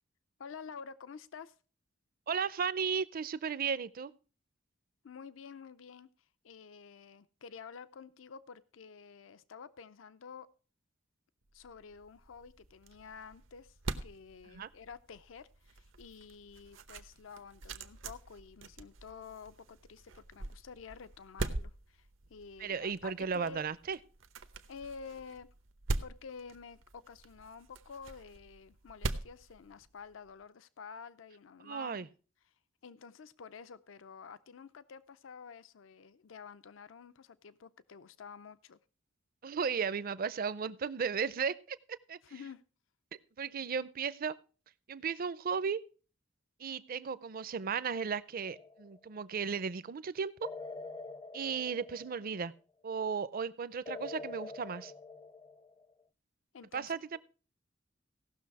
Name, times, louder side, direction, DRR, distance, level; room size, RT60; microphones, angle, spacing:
voice 1, 0.4-1.5 5.0-6.1 6.4-10.5 11.5-13.8 14.0-23.6 24.7-25.5 26.0-32.1 32.8-38.8 42.2-42.6 56.5-57.2, left 5 dB, 80° left, 14 dB, 0.5 m, -50 dB
voice 2, 2.3-4.1 14.5-14.7 22.6-24.0 31.6-32.1 39.4-41.8 42.1-42.2 43.4-44.3 44.9-45.8 46.6-50.5 51.3-52.5 52.8-54.9 56.7-57.2, right 6 dB, 50° right, 18 dB, 0.5 m, -35 dB
sound 1, 11.6-30.3, right 2 dB, 85° right, 0.9 m, -43 dB
sound 2, 48.5-49.0 50.4-52.5 53.8-55.9, left 3 dB, 20° left, 0.4 m, -46 dB
16.5 x 6.4 x 4.7 m, 0.37 s
head